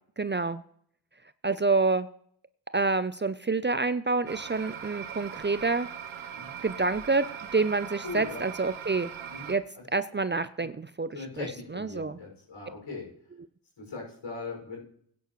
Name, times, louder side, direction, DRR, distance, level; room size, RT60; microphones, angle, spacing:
voice 1, 0.2-0.6 1.4-2.1 2.7-5.9 6.6-7.2 7.5-9.1 9.5-9.6 9.9-11.1 11.4-12.2, right 3 dB, 25° right, 14 dB, 0.6 m, -27 dB
sound 1, 4.3-9.5, right 8 dB, 85° right, 1.0 m, -40 dB
voice 2, 8.0-8.4 9.3-9.5 10.6-10.7 11.1-13.1 13.8-14.8, left 3 dB, 70° left, -1 dB, 6.0 m, -39 dB
16.0 x 9.4 x 3.1 m, 0.64 s
cardioid pair, 45°, 47 cm